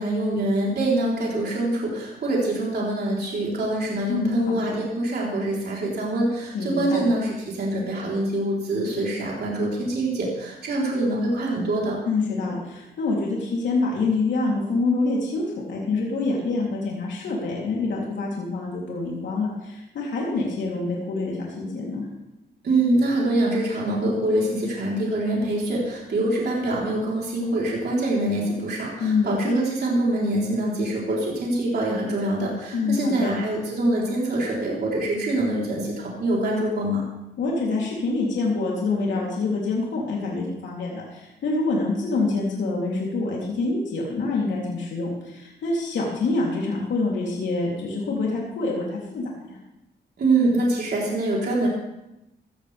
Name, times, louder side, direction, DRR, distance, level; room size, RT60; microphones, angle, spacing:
voice 1, 0.0-12.0 22.6-37.0 50.2-51.7, right 1 dB, 60° right, -4 dB, 3.9 m, -24 dB
voice 2, 4.1-4.8 6.5-7.0 12.1-22.1 29.0-29.6 32.7-33.3 37.4-49.6, left 3 dB, 90° left, -4 dB, 3.3 m, -26 dB
15.0 x 15.0 x 3.5 m, 0.93 s
cardioid pair, 95°, 18 cm